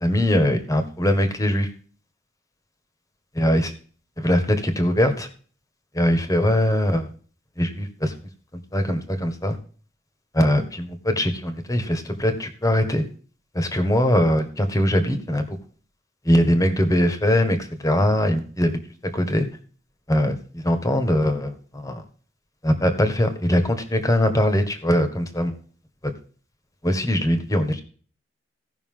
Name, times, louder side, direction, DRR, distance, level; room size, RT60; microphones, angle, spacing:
voice 1, 0.0-1.7 3.3-3.7 4.2-5.3 5.9-7.1 7.6-8.1 8.7-9.6 10.3-13.0 13.5-15.6 16.2-18.8 19.1-19.5 20.1-22.0 22.6-25.5 26.8-27.8, equal, 20° left, 8 dB, 1.6 m, -21 dB
16.5 x 5.9 x 3.8 m, 0.42 s
head